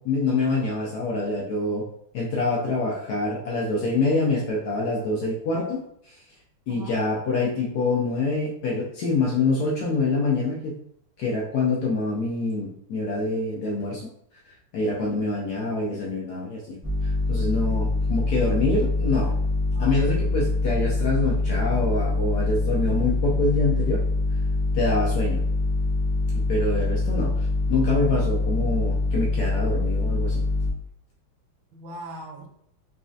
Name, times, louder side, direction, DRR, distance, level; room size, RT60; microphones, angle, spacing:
voice 1, 0.0-1.8 2.1-6.2 6.7-10.7 11.2-14.0 14.7-16.8 17.3-19.3 19.8-24.0 24.7-25.4 26.5-27.3 27.7-30.4, left 3 dB, 70° left, -3 dB, 1.0 m, -25 dB
voice 2, 6.7-7.0 14.9-15.3 19.6-19.9 31.7-32.5, right 2 dB, 75° right, 2 dB, 1.4 m, -40 dB
sound 1, 16.8-30.7, left 3 dB, 20° right, 0.4 m, -24 dB
4.1 x 2.6 x 2.4 m, 0.72 s
omnidirectional pair, 2.3 m